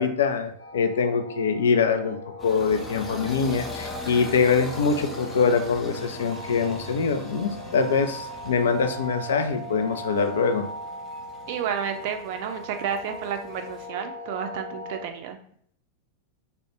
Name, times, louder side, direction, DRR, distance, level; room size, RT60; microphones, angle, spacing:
voice 1, 0.0-10.7, left 5 dB, 65° left, 7 dB, 0.3 m, -24 dB
sound 1, 0.6-15.1, left 1 dB, 85° left, 0.7 m, -39 dB
sound 2, 2.4-13.9, equal, 10° left, 0.5 m, -41 dB
voice 2, 11.5-15.4, right 8 dB, 50° right, 6 dB, 0.3 m, -31 dB
2.3 x 2.1 x 3.0 m, 0.63 s
figure-of-eight pair, 90°, 0 cm